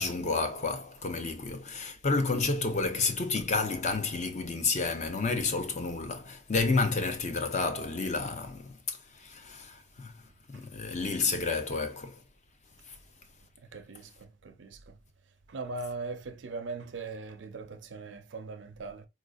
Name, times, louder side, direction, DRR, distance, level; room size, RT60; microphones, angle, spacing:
voice 1, 0.0-10.1 10.5-12.2 12.9-13.0, left 3 dB, 40° left, 0.6 m, -30 dB
voice 2, 13.6-15.0 15.5-19.1, right 3 dB, 65° right, 0.5 m, -40 dB
4.0 x 2.5 x 2.3 m
head